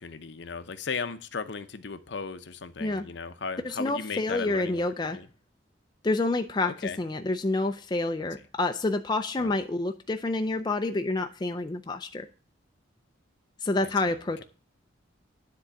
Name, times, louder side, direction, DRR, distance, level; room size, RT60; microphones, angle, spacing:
voice 1, 0.0-4.8 5.1-5.3 6.6-7.0 9.4-9.6 13.8-14.4, left 5 dB, 60° left, 11 dB, 0.7 m, -36 dB
voice 2, 3.6-5.2 6.0-12.3 13.6-14.4, left 2 dB, 20° left, 6 dB, 0.4 m, -28 dB
9.9 x 3.8 x 6.9 m, 0.38 s
head